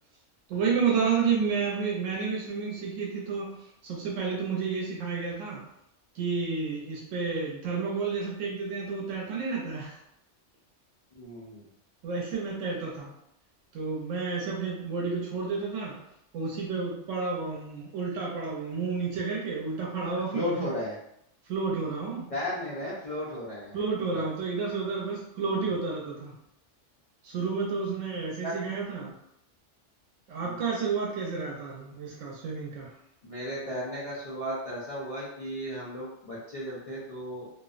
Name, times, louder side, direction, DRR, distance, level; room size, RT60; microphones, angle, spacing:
voice 1, 0.5-5.6 6.1-10.0 12.0-13.1 13.7-16.0 16.3-20.7 21.4-22.3 23.7-26.3 27.2-29.1 30.3-32.9, right 5 dB, 85° right, -3 dB, 0.9 m, -31 dB
voice 2, 11.2-11.7 20.3-21.0 22.3-23.8 24.1-24.2 25.5-25.7 28.4-28.5 30.4-30.6 33.2-37.5, left 1 dB, 60° left, -8 dB, 0.3 m, -35 dB
2.5 x 2.0 x 2.4 m, 0.78 s
omnidirectional pair, 1.3 m